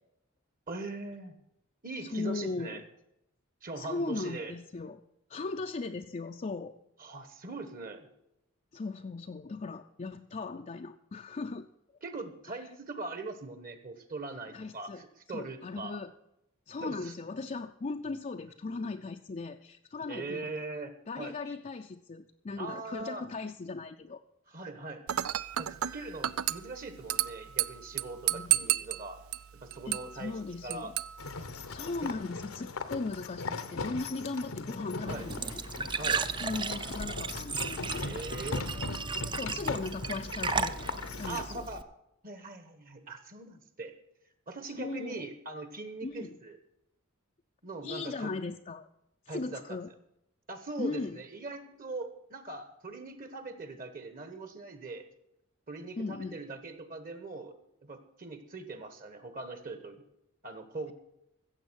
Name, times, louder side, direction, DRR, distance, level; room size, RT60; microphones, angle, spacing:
voice 1, 0.7-1.4 1.8-2.8 3.6-4.5 7.0-8.1 12.0-16.0 16.8-17.1 20.1-21.3 22.6-23.3 24.5-25.0 25.6-29.2 29.5-30.3 30.6-30.9 32.0-32.1 35.0-35.3 35.9-36.2 38.0-39.6 41.3-41.8 42.2-43.9 44.5-46.5 47.6-48.3 49.3-49.8 50.5-55.0 55.7-57.5 57.8-60.0 60.4-60.9, right 3 dB, 45° right, 10 dB, 1.3 m, -41 dB
voice 2, 2.0-2.9 3.8-5.0 5.3-6.8 8.7-11.7 12.5-12.6 14.5-15.0 15.3-16.1 16.7-20.6 21.1-24.2 28.3-28.5 29.9-30.9 31.7-35.6 36.4-38.0 39.3-40.9 41.2-41.7 44.8-45.2 46.0-46.4 47.8-48.9 49.3-49.9 50.8-51.2 56.0-56.4, left 3 dB, 35° left, 4 dB, 0.5 m, -38 dB
Dishes pots and pans / Glass, 25.1-32.1, right 13 dB, 85° right, 0.4 m, -33 dB
sound 1, 31.2-41.5, left 3 dB, 85° left, 1.0 m, -39 dB
Glass / Trickle dribble / Fill (with liquid), 35.1-41.8, right 4 dB, 20° right, 0.5 m, -35 dB
15.5 x 7.3 x 6.2 m, 0.83 s
head